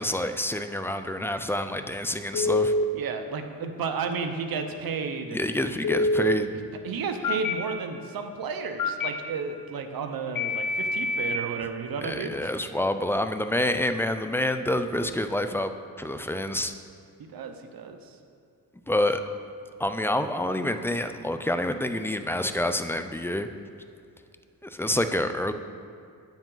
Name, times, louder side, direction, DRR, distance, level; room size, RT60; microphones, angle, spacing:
voice 1, 0.0-2.7 5.3-6.5 12.0-15.7 16.0-16.7 18.9-19.2 19.8-23.5 24.6-25.5, left 1 dB, 5° left, 8 dB, 0.4 m, -27 dB
Telephone, 2.3-2.8 5.8-6.3 7.2-7.5 8.8-9.1 10.4-11.4, left 2 dB, 60° left, 0.7 m, -25 dB
voice 2, 2.9-5.4 6.8-12.5 17.2-18.0, right 5 dB, 70° right, 6 dB, 0.9 m, -32 dB
8.9 x 7.2 x 3.9 m, 2.5 s
cardioid pair, 80°, 37 cm